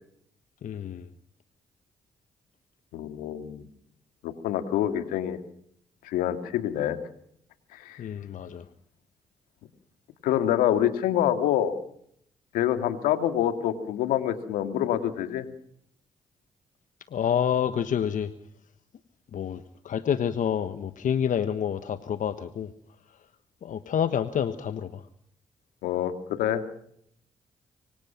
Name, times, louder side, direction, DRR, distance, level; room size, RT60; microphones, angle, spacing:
voice 1, 0.6-1.1 8.0-8.6 17.1-18.3 19.3-22.7 23.6-25.0, left 8 dB, 65° left, 11 dB, 1.3 m, -28 dB
voice 2, 2.9-3.7 4.2-5.4 6.0-7.0 7.7-8.1 10.2-11.7 12.5-15.5 25.8-26.6, left 11 dB, 85° left, 8 dB, 2.3 m, -26 dB
25.0 x 25.0 x 5.9 m, 0.70 s
hypercardioid pair, 40°, 14 cm